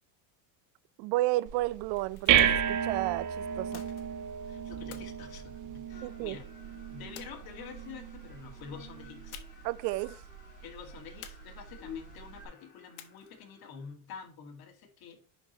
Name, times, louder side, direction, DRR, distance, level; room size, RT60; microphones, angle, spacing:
voice 1, 1.0-3.8 6.0-6.4 9.6-10.2, right 18 dB, 60° right, 0.5 m, -32 dB
sound 1, 1.5-12.4, right 9 dB, 40° right, 1.0 m, -33 dB
sound 2, 1.9-2.7 3.7-4.4 4.9-6.2 7.2-7.9 9.3-9.8 10.0-10.2 11.2-12.0 13.0-13.5, left 11 dB, 80° left, 1.3 m, -51 dB
voice 2, 4.4-6.4 6.9-9.4 10.6-15.2, left 6 dB, 50° left, 2.3 m, -47 dB
sound 3, 5.9-13.9, left 7 dB, 20° left, 2.1 m, -53 dB
11.0 x 4.6 x 3.1 m
supercardioid pair, 115°, 46 cm